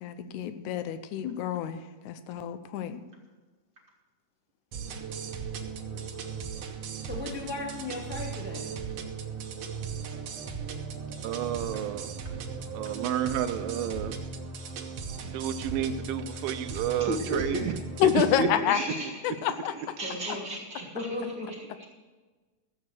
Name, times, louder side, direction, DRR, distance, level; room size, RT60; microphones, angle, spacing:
voice 1, 0.0-3.0 18.0-19.7, left 10 dB, 75° left, 11 dB, 1.9 m, -28 dB
sound 1, 4.7-18.4, right 5 dB, 65° right, 1.6 m, -37 dB
voice 2, 7.0-8.7 20.0-20.4 20.9-21.5, left 2 dB, 5° right, -3 dB, 1.7 m, -36 dB
voice 3, 11.2-12.1 12.7-14.2 15.2-17.7 18.0-18.1 18.4-18.5, right 9 dB, 85° right, 10 dB, 2.6 m, -31 dB
voice 4, 17.0-17.8 18.2-21.9, right 1 dB, 45° right, -1 dB, 1.6 m, -35 dB
14.5 x 7.8 x 6.4 m, 1.3 s
omnidirectional pair, 4.1 m